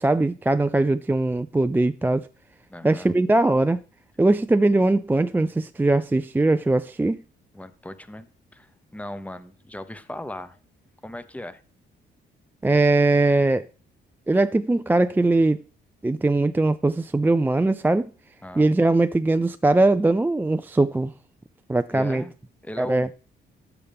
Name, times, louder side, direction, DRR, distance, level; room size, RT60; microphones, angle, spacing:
voice 1, 0.0-2.3 2.8-3.8 4.2-7.2 12.6-13.7 14.3-15.6 16.0-18.1 18.6-21.1 21.7-22.2 22.8-23.1, right 2 dB, 10° right, 0.4 m, -20 dB
voice 2, 2.7-3.1 7.5-8.3 8.5-10.6 11.0-11.6 18.4-18.7 21.9-22.3 22.6-23.2, left 1 dB, 5° left, 0.9 m, -37 dB
12.5 x 8.1 x 3.5 m
cardioid pair, 90°, 20 cm